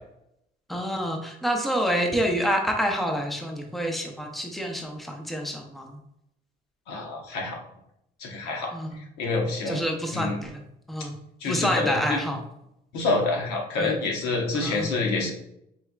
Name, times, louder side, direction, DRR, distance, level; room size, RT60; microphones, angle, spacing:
voice 1, 0.7-6.0 8.7-8.9 9.7-10.6 10.9-12.4 13.8-14.0 14.5-14.9, equal, ahead, 2 dB, 0.7 m, -28 dB
voice 2, 6.9-7.6 8.2-8.7 9.2-9.8 10.1-10.4 11.4-12.2 12.9-15.3, left 3 dB, 90° left, 0 dB, 1.0 m, -27 dB
4.4 x 3.4 x 2.3 m, 0.79 s
cardioid pair, 110°, 17 cm